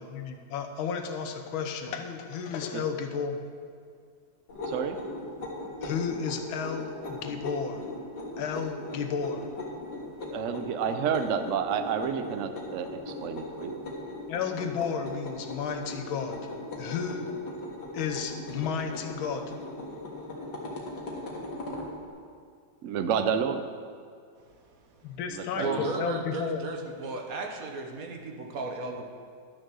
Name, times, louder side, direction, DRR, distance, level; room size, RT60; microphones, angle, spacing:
voice 1, 0.0-3.4 5.8-7.8 8.4-9.5 14.3-17.3 17.9-19.5 25.0-26.6, left 6 dB, 85° left, 6 dB, 1.7 m, -33 dB
sound 1, 4.5-21.9, left 1 dB, 60° left, 2.2 m, -39 dB
voice 2, 4.7-5.0 10.3-13.9 22.8-23.7 25.3-26.0, right 7 dB, 85° right, 8 dB, 0.6 m, -30 dB
voice 3, 24.4-25.1 25.6-29.0, right 2 dB, 50° right, 2 dB, 1.3 m, -36 dB
12.0 x 6.5 x 6.2 m, 2.2 s
omnidirectional pair, 2.2 m